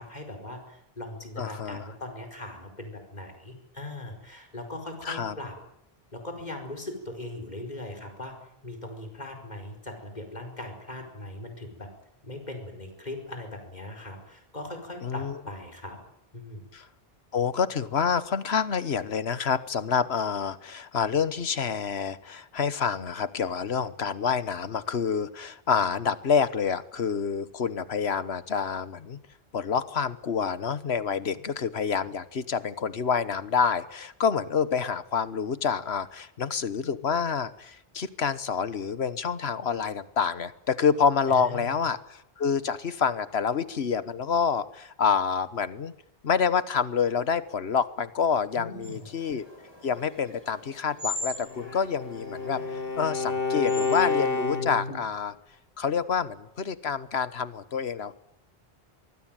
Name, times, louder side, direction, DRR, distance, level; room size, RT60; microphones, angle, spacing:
voice 1, 0.0-5.6 6.1-8.4 8.6-11.9 12.2-16.0 16.3-16.6 41.3-41.7 48.5-49.0, left 1 dB, 45° left, 4 dB, 5.0 m, -39 dB
voice 2, 1.4-1.8 5.0-5.3 15.0-15.4 16.7-16.9 17.3-29.2 29.5-45.9 46.2-49.4 49.8-55.3 55.8-58.1, left 6 dB, 85° left, 15 dB, 1.5 m, -27 dB
sound 1, 48.8-54.8, left 2 dB, 25° left, 6.7 m, -41 dB
Bowed string instrument, 51.4-55.0, left 4 dB, 60° left, 1.7 m, -29 dB
24.5 x 20.5 x 9.0 m, 0.77 s
omnidirectional pair, 1.0 m